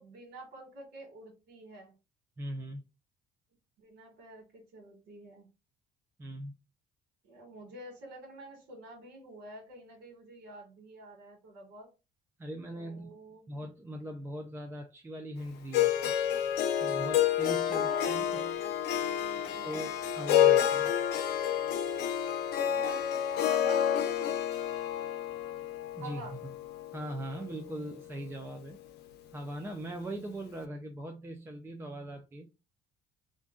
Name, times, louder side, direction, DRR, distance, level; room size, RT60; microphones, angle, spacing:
voice 1, 0.0-1.9 3.8-5.5 7.2-11.9 12.7-13.5 17.7-20.0 22.7-24.3 26.0-26.4, right 2 dB, 85° right, 1.3 m, -48 dB
voice 2, 2.4-2.8 6.2-6.5 12.4-13.1 13.5-16.1 16.7-18.5 19.6-20.9 25.9-26.5 26.9-28.8 29.3-32.5, right 1 dB, 15° right, 0.4 m, -40 dB
Harp, 15.7-27.9, left 10 dB, 75° left, 0.6 m, -29 dB
2.5 x 2.2 x 3.6 m
cardioid pair, 110°, 17 cm